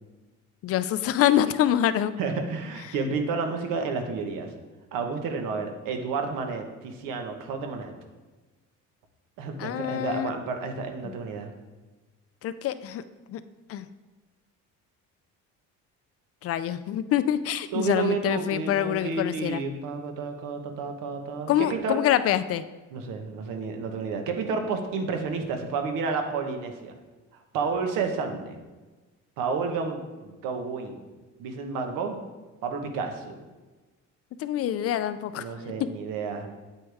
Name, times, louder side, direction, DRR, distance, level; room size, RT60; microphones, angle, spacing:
voice 1, 0.6-2.1 9.6-10.3 11.0-11.2 12.4-13.0 13.3-13.4 13.7-13.9 16.4-19.6 21.5-22.6 34.4-35.4, left 11 dB, 50° left, 13 dB, 0.4 m, -25 dB
voice 2, 2.2-4.5 4.9-7.9 9.4-11.5 17.7-22.1 22.9-26.9 27.5-28.6 29.4-31.0 31.4-32.2 32.6-33.4 35.3-36.5, right 4 dB, 90° right, 4 dB, 1.4 m, -31 dB
8.7 x 8.3 x 3.5 m, 1.2 s
cardioid pair, 160°, 32 cm